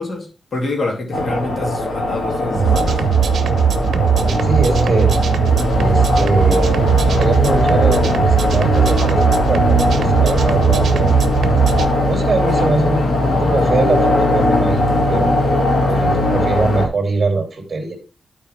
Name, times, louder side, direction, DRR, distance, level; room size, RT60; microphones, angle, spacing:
voice 1, 0.0-3.0, left 2 dB, 50° left, 2.7 m, -26 dB
sound 1, 1.1-16.9, left 1 dB, 80° left, 2.5 m, -18 dB
sound 2, 2.5-11.8, right 8 dB, 80° right, 0.8 m, -18 dB
voice 2, 4.2-5.2 5.8-11.1 12.0-15.3 15.9-18.0, right 3 dB, 35° right, 2.9 m, -22 dB
12.0 x 4.6 x 3.5 m
wide cardioid pair, 110°, 0 cm